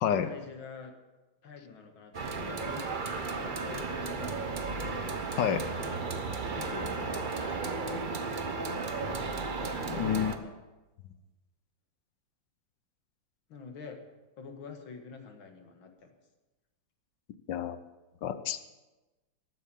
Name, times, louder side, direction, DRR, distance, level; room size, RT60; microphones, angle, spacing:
voice 1, 0.2-0.9 1.4-5.0 5.8-6.0 6.6-8.9 9.6-10.6 13.5-14.0 14.4-16.1, left 5 dB, 90° left, 4 dB, 2.4 m, -47 dB
sound 1, 2.1-10.4, right 4 dB, 40° right, 0.7 m, -34 dB
voice 2, 9.9-10.3 17.5-17.8 18.2-18.6, left 9 dB, 70° left, 12 dB, 1.4 m, -29 dB
13.0 x 9.3 x 7.6 m, 1.1 s
omnidirectional pair, 2.1 m